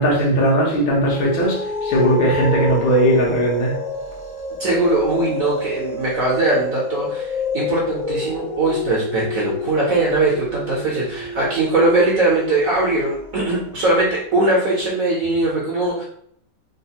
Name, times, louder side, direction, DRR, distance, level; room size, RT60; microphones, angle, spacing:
voice 1, 0.0-3.7, right 1 dB, 80° left, -3 dB, 1.8 m, -18 dB
sound 1, 0.9-13.7, left 3 dB, 60° left, 0.4 m, -29 dB
voice 2, 4.6-16.0, right 2 dB, 60° right, -4 dB, 0.9 m, -20 dB
3.9 x 2.4 x 2.8 m, 0.66 s
omnidirectional pair, 2.2 m